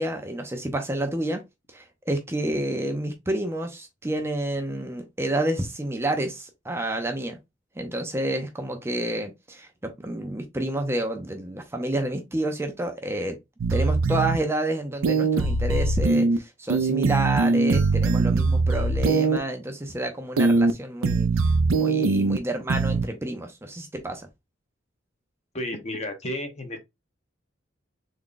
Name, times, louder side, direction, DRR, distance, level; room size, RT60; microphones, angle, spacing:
voice 1, 0.0-1.4 1.7-7.4 7.8-13.4 13.7-21.3 21.7-24.3, right 1 dB, 15° right, 0.5 m, -29 dB
sound 1, 13.6-14.4 15.0-16.4 16.7-19.4 20.4-20.7 21.0-22.4 22.7-23.0, right 3 dB, 90° right, 0.4 m, -21 dB
voice 2, 25.5-26.8, left 1 dB, 35° left, 0.7 m, -32 dB
3.5 x 2.2 x 3.8 m
head